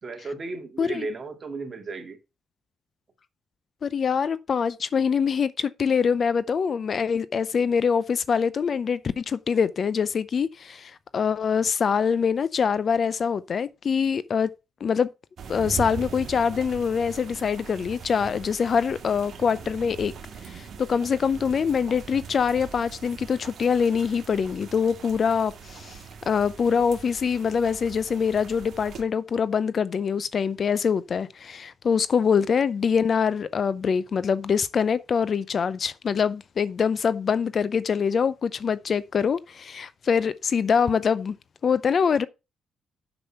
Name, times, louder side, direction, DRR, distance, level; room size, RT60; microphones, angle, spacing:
voice 1, 0.0-2.2, right 3 dB, 35° right, 2.2 m, -34 dB
voice 2, 3.8-14.5 14.8-15.1 15.5-20.1 20.5-26.0 26.3-41.3 41.6-42.3, left 6 dB, 50° left, 0.5 m, -24 dB
sound 1, 15.4-29.0, right 6 dB, 60° right, 1.9 m, -41 dB
6.7 x 6.2 x 5.5 m
cardioid pair, 90°, 0 cm